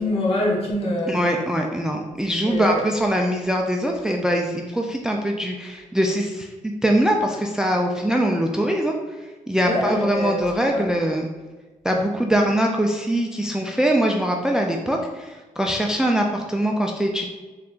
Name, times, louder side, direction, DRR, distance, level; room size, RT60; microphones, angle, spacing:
voice 1, 0.0-1.3 2.4-2.8 9.6-10.9, left 1 dB, 45° left, -3 dB, 1.1 m, -25 dB
voice 2, 1.1-11.3 11.8-17.3, equal, 5° right, 2 dB, 0.3 m, -22 dB
3.8 x 3.4 x 2.4 m, 1.3 s
cardioid pair, 95°, 14 cm